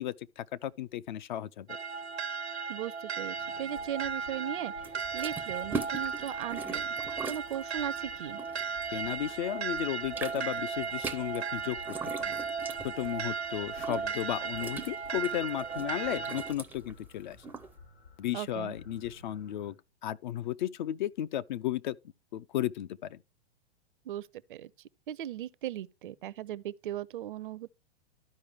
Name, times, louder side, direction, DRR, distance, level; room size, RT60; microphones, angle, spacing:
voice 1, 0.0-1.8 8.9-12.4 12.8-17.4 18.2-19.8 20.0-22.0 22.3-23.2, left 12 dB, 50° left, 0.4 m, -34 dB
sound 1, 1.7-16.5, right 6 dB, 85° right, 0.8 m, -36 dB
voice 2, 2.7-4.7 5.1-6.9 7.3-8.4 18.3-18.7 24.0-24.7 25.1-27.7, right 11 dB, 55° right, 0.5 m, -37 dB
sound 2, 3.3-19.7, left 3 dB, 85° left, 4.3 m, -57 dB
sound 3, 4.8-9.4 9.7-17.7, right 4 dB, 5° right, 0.4 m, -41 dB
12.5 x 4.8 x 3.3 m
figure-of-eight pair, 105°, 32 cm